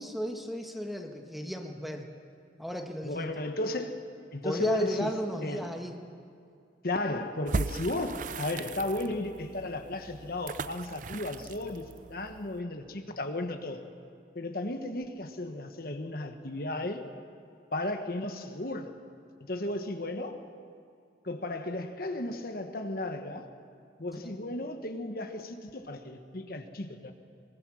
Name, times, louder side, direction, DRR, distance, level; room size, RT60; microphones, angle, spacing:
voice 1, 0.0-2.1 2.6-3.3 4.4-6.0 24.2-24.3, equal, ahead, 3 dB, 1.6 m, -34 dB
voice 2, 3.0-3.9 4.3-5.1 5.4-5.6 6.8-13.8 14.3-17.0 17.7-18.9 19.4-20.4 21.2-23.4 24.0-27.1, left 1 dB, 55° left, 6 dB, 1.4 m, -34 dB
sound 1, 7.5-12.6, right 4 dB, 45° right, 0.5 m, -38 dB
24.5 x 22.0 x 6.4 m, 2.4 s
head